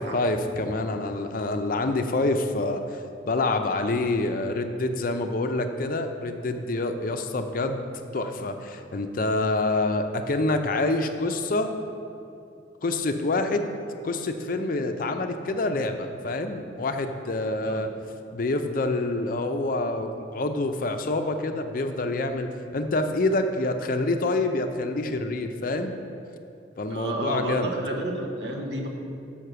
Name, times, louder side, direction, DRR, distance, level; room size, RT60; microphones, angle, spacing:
voice 1, 0.0-2.8 3.2-11.8 12.8-13.7 14.0-17.9 18.3-26.0 26.8-27.7, left 2 dB, 50° left, 7 dB, 0.5 m, -27 dB
voice 2, 26.9-28.9, right 1 dB, 70° right, 1 dB, 1.1 m, -31 dB
6.3 x 5.8 x 6.7 m, 2.6 s
head